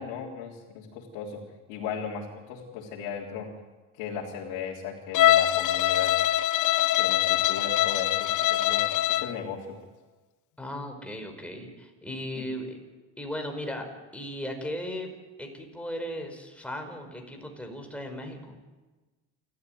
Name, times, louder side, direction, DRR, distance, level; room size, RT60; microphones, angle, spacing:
voice 1, 0.0-1.4 1.7-3.5 3.9-6.1 6.9-8.8 9.1-9.8 12.4-12.5, left 7 dB, 85° left, -3 dB, 3.7 m, -37 dB
Bowed string instrument, 5.1-9.4, left 13 dB, 50° left, 0.9 m, -23 dB
voice 2, 10.6-12.8 13.2-13.9 14.1-15.1 15.4-18.6, equal, 5° left, 3 dB, 5.2 m, -36 dB
28.5 x 13.5 x 9.5 m, 1.2 s
cardioid pair, 115°, 39 cm